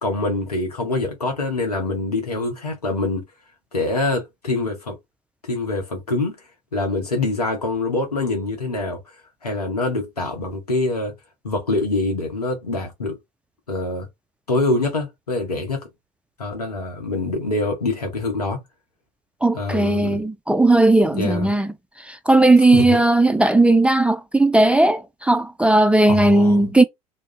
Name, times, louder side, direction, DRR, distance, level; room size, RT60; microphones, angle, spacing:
voice 1, 0.0-3.2 3.7-5.0 5.4-6.3 6.7-9.0 9.4-11.1 11.4-13.2 13.7-14.1 14.5-15.9 16.4-18.6 19.5-20.2 21.0-21.6 22.7-23.0 26.1-26.7, left 2 dB, 85° left, 1.0 m, -25 dB
voice 2, 19.4-21.7 22.3-26.8, right 2 dB, 5° right, 0.4 m, -16 dB
2.4 x 2.2 x 3.1 m
figure-of-eight pair, 60°, 19 cm